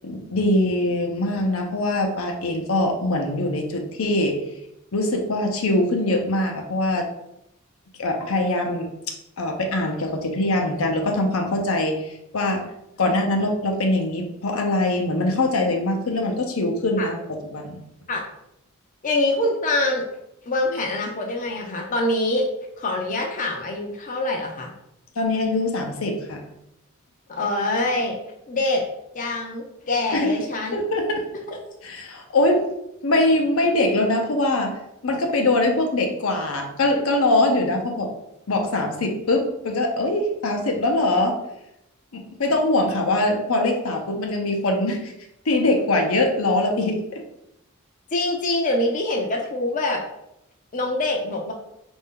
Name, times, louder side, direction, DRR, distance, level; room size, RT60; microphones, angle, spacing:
voice 1, 0.0-4.4 4.9-7.1 8.0-8.9 9.4-12.7 13.0-17.8 25.2-26.4 30.1-30.3 30.7-31.2 31.8-32.7 33.0-38.1 38.5-41.4 42.1-45.1 45.5-47.2, left 2 dB, 75° left, 3 dB, 0.7 m, -22 dB
voice 2, 19.0-20.0 20.5-22.4 22.8-24.7 27.3-28.2 28.5-28.8 29.1-30.8 31.5-31.6 48.1-50.0 50.7-51.5, left 2 dB, 40° left, 0 dB, 0.5 m, -24 dB
4.3 x 2.6 x 3.6 m, 0.83 s
head